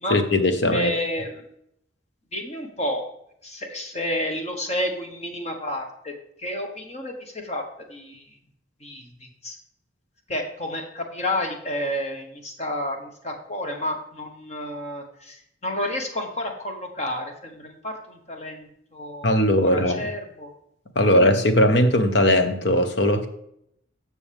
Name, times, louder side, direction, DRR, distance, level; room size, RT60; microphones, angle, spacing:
voice 1, 0.1-0.9 19.2-20.1 20.9-23.3, left 1 dB, 60° left, 7 dB, 1.1 m, -19 dB
voice 2, 0.7-1.4 2.3-3.0 3.4-6.1 6.4-7.6 7.9-8.2 8.8-9.6 10.3-19.3 19.6-20.5 21.0-21.1, left 1 dB, 35° left, 3 dB, 1.5 m, -30 dB
14.5 x 6.2 x 3.6 m, 0.74 s
head